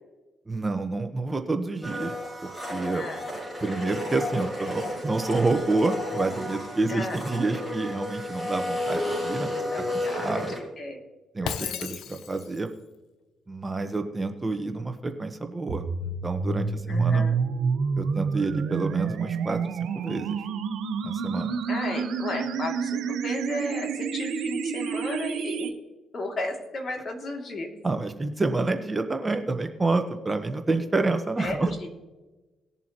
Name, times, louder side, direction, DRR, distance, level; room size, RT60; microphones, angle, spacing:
voice 1, 0.5-2.2 2.4-3.1 3.6-9.6 9.9-10.6 11.3-12.7 13.5-15.9 16.2-17.3 18.0-20.5 21.0-21.6 27.8-31.7, right 3 dB, 20° right, 6 dB, 1.1 m, -28 dB
Domestic sounds home sounds, 1.8-10.6, left 1 dB, 15° left, 4.3 m, -32 dB
voice 2, 6.9-7.2 9.4-11.0 11.4-11.9 16.9-17.4 21.7-25.7 26.1-27.7 31.4-31.9, left 2 dB, 45° left, 2 dB, 2.6 m, -34 dB
Shatter, 11.4-12.7, left 9 dB, 80° left, 0.6 m, -34 dB
sound 1, 15.7-25.7, right 5 dB, 85° right, 1.1 m, -28 dB
19.0 x 7.1 x 3.0 m, 1.1 s
cardioid pair, 90°, 0 cm